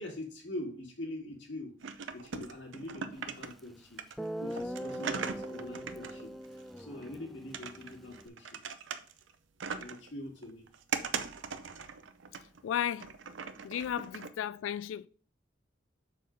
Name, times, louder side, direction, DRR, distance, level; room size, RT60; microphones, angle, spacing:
voice 1, 0.0-1.7 2.1-4.0 4.4-8.6 9.8-10.7, left 1 dB, 65° left, 2.0 m, -43 dB
sound 1, 1.8-3.7 4.0-7.1 7.5-9.3 9.6-10.1 10.4-12.6 13.0-14.3, right 6 dB, 70° right, 0.6 m, -40 dB
Guitar, 3.6-3.7 4.2-8.3, equal, ahead, 0.3 m, -41 dB
voice 2, 12.6-13.1 13.6-15.1, left 9 dB, 85° left, 0.3 m, -34 dB
6.6 x 4.2 x 5.1 m
head